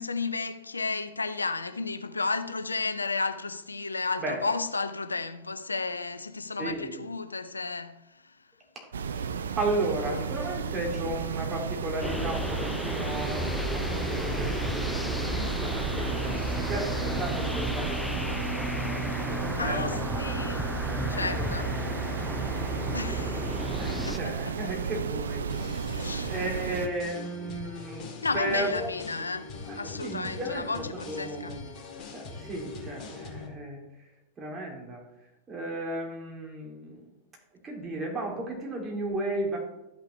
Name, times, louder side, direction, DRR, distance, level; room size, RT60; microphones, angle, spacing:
voice 1, 0.0-8.2 10.0-10.2 16.3-16.6 19.2-20.8 21.1-21.7 22.9-24.2 25.9-26.3 28.2-31.6, left 3 dB, 80° left, 0.5 m, -33 dB
voice 2, 6.6-7.0 9.6-18.4 18.9-20.5 20.8-23.0 23.8-25.8 26.2-28.1 28.3-28.9 29.6-31.7 32.1-33.8 34.4-35.0 35.5-37.0 37.6-39.6, right 2 dB, 20° right, 2.8 m, -35 dB
sound 1, 8.9-26.9, right 6 dB, 65° right, 0.4 m, -33 dB
sound 2, 12.0-24.2, left 1 dB, 5° left, 0.3 m, -33 dB
sound 3, 25.5-33.5, left 4 dB, 30° left, 2.0 m, -42 dB
12.5 x 5.7 x 3.3 m
figure-of-eight pair, 90°, 0 cm